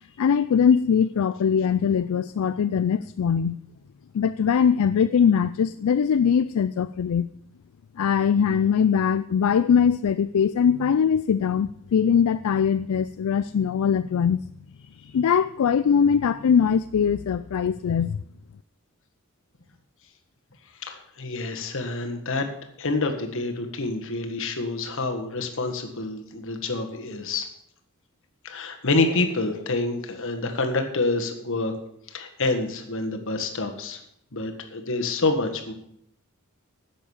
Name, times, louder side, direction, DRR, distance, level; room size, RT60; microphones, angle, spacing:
voice 1, 0.2-3.6 4.1-7.3 8.0-14.4 15.1-18.2, left 7 dB, 85° left, 13 dB, 0.4 m, -21 dB
voice 2, 20.8-22.4 22.8-27.5 28.4-31.7 32.1-34.0 34.3-35.7, left 3 dB, 65° left, 5 dB, 1.7 m, -27 dB
11.0 x 7.5 x 7.2 m, 0.72 s
head